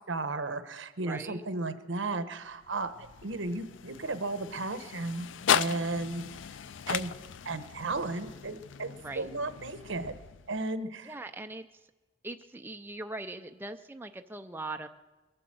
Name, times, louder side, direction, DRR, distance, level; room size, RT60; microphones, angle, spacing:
voice 1, 0.1-2.9 3.2-6.2 6.9-7.1 7.4-10.1 10.5-11.2, right 2 dB, 75° right, 11 dB, 1.0 m, -34 dB
voice 2, 1.1-1.4 9.0-9.3 11.0-11.7 12.2-14.9, right 2 dB, 10° right, 6 dB, 0.4 m, -40 dB
sound 1, 2.5-10.7, left 8 dB, 75° left, 0.4 m, -36 dB
22.0 x 7.9 x 7.7 m, 1.2 s
head